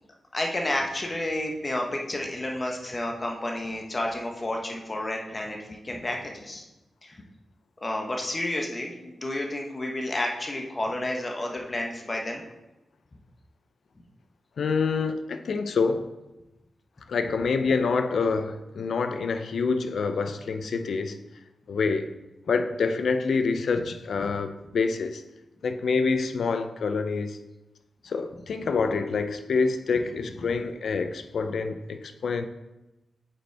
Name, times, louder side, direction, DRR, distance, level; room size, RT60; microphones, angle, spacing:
voice 1, 0.3-6.6 7.0-7.2 7.8-12.4, left 1 dB, 25° left, 0.9 m, -31 dB
voice 2, 14.6-16.1 17.1-21.2 21.7-22.1 22.5-25.2 25.6-27.4 28.0-32.5, left 4 dB, 65° left, 0.5 m, -26 dB
8.4 x 5.4 x 3.4 m
wide cardioid pair, 150°, 0 cm